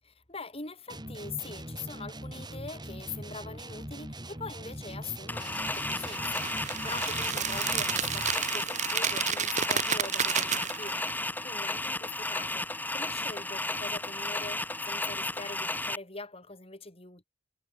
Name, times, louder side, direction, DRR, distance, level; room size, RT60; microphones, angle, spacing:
voice 1, 0.3-17.2, left 4 dB, 30° left, 4.6 m, -43 dB
sound 1, 0.9-8.4, right 1 dB, 20° right, 6.9 m, -42 dB
sound 2, 5.3-16.0, left 2 dB, 10° left, 4.6 m, -33 dB
sound 3, 5.7-11.1, right 8 dB, 35° right, 2.4 m, -31 dB
head